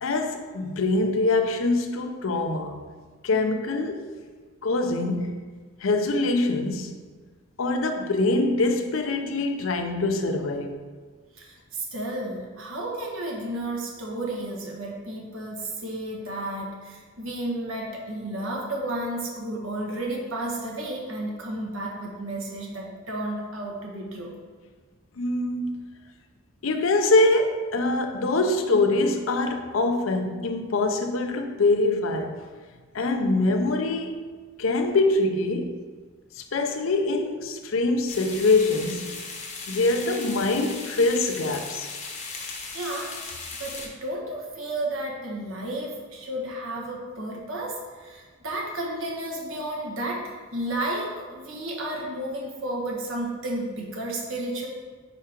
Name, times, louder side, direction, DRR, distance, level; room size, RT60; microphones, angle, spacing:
voice 1, 0.0-2.8 3.2-4.1 4.6-5.5 5.8-6.9 7.6-10.8 25.2-25.9 26.6-32.4 32.9-34.2 34.6-35.8 36.3-39.1 39.7-41.9, left 2 dB, 75° left, 5 dB, 0.6 m, -24 dB
voice 2, 11.3-24.3 42.7-43.2 43.6-54.7, right 1 dB, 75° right, -2 dB, 1.4 m, -32 dB
sound 1, 38.1-43.9, left 4 dB, 35° left, 0.9 m, -37 dB
5.1 x 4.8 x 4.4 m, 1.5 s
head